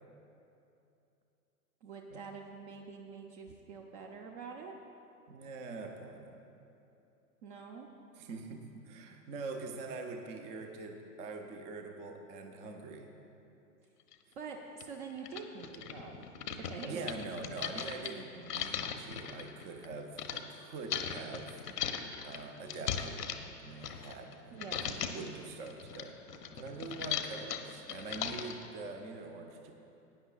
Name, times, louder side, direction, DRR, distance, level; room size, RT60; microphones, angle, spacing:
voice 1, 1.8-4.7 7.4-7.9 14.4-17.0 24.5-25.0, right 5 dB, 45° right, 1 dB, 0.9 m, -46 dB
voice 2, 5.3-6.4 8.1-13.1 16.9-21.6 22.2-23.2 23.6-26.2 26.5-29.7, right 3 dB, 15° right, 4 dB, 0.5 m, -44 dB
sound 1, 14.1-14.2 14.8-14.9 15.2-20.4 20.9-24.3 24.6-25.3 25.7-28.7, left 8 dB, 75° left, 1.0 m, -38 dB
18.0 x 9.5 x 2.4 m, 2.8 s
hypercardioid pair, 115°, 48 cm